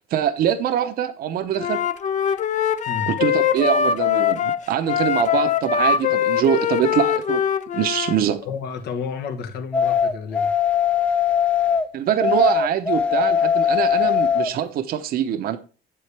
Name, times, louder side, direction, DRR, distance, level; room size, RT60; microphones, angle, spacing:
voice 1, 0.1-1.8 3.1-7.4 7.7-8.4 11.9-15.6, right 10 dB, 60° right, 0.7 m, -23 dB
Wind instrument woodwind instrument, 1.5-8.2, left 8 dB, 45° left, 0.5 m, -22 dB
voice 2, 8.4-10.5, left 6 dB, 75° left, 1.2 m, -31 dB
sound 1, 9.7-11.9 12.2-14.5, left 8 dB, 5° left, 0.6 m, -20 dB
8.3 x 7.6 x 3.3 m
cardioid pair, 110°, 17 cm